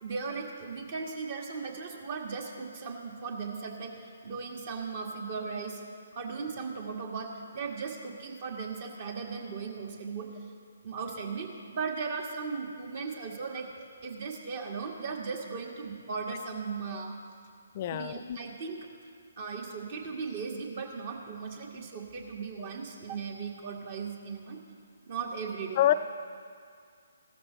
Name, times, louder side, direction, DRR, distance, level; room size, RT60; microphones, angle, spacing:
voice 1, 0.0-5.8 6.1-10.3 10.8-13.7 14.0-17.2 17.9-18.8 19.4-24.6 25.0-25.8, right 5 dB, 45° right, 2 dB, 1.8 m, -37 dB
voice 2, 17.8-18.4 25.8-25.9, left 12 dB, 40° left, 11 dB, 0.4 m, -26 dB
16.0 x 13.0 x 3.2 m, 2.2 s
figure-of-eight pair, 140°, 0 cm